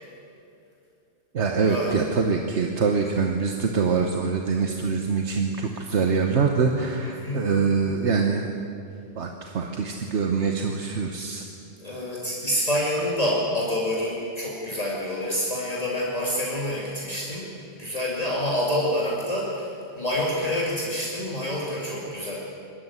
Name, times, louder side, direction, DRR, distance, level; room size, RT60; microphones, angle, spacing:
voice 1, 1.3-8.5 9.1-11.5, right 5 dB, 80° right, 3 dB, 1.5 m, -24 dB
voice 2, 7.0-7.4 11.8-22.4, left 1 dB, 35° left, -5 dB, 2.7 m, -27 dB
23.0 x 13.0 x 9.5 m, 2.5 s
omnidirectional pair, 1.2 m